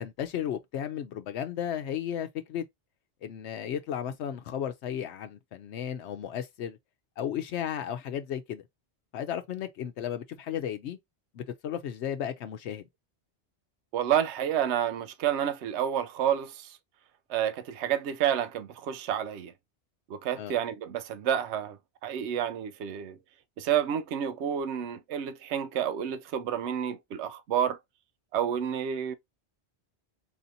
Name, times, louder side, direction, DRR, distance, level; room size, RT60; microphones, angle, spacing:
voice 1, 0.0-2.6 3.2-6.8 7.2-8.6 9.1-11.0 11.3-12.8 20.4-20.5, left 9 dB, 80° left, 0.9 m, -34 dB
voice 2, 13.9-16.7 17.3-19.5 20.1-23.2 23.6-27.8 28.3-29.1, right 9 dB, 85° right, 0.9 m, -29 dB
4.9 x 2.7 x 2.6 m
omnidirectional pair, 1.1 m